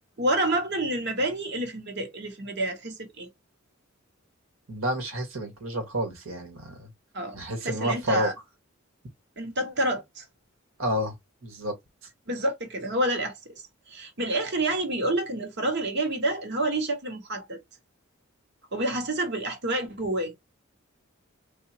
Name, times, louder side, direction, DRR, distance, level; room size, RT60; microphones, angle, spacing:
voice 1, 0.2-3.3 7.1-8.3 9.4-10.2 12.3-17.6 18.7-20.3, right 1 dB, 55° right, 1.2 m, -28 dB
voice 2, 4.7-6.9 7.3-8.3 10.8-11.1 11.4-11.7, equal, 85° right, 1.7 m, -29 dB
3.7 x 2.7 x 2.8 m
head